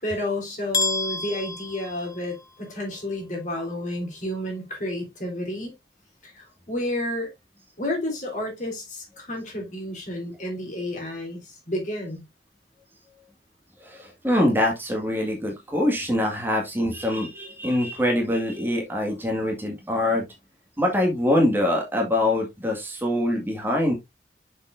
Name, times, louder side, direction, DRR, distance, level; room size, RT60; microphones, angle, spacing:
voice 1, 0.0-5.7 6.2-7.3 7.8-12.2, left 1 dB, 45° left, 3.8 m, -31 dB
sound 1, 0.7-2.7, left 3 dB, 20° left, 0.6 m, -29 dB
voice 2, 13.8-20.2 20.8-23.9, left 1 dB, 10° right, 1.9 m, -24 dB
7.0 x 6.6 x 2.6 m
head